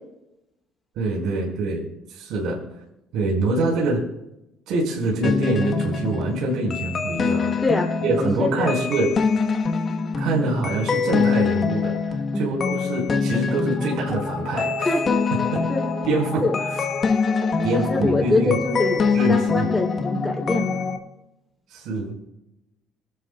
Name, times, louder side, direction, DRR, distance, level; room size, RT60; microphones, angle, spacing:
voice 1, 1.0-1.8 2.1-2.6 3.1-4.0 4.7-7.6 8.0-9.1 10.2-14.9 15.5-15.6 16.1-16.8 17.6-18.5 19.1-19.7 21.7-22.2, right 2 dB, 65° right, -1 dB, 5.5 m, -25 dB
sound 1, 5.2-21.0, left 5 dB, 30° left, 1.3 m, -24 dB
voice 2, 7.6-8.8 12.3-12.5 14.8-15.0 15.7-15.9 16.4-16.6 17.7-20.8, left 2 dB, 10° left, -1 dB, 3.3 m, -24 dB
28.5 x 12.5 x 2.4 m, 0.92 s
cardioid pair, 170°, 0 cm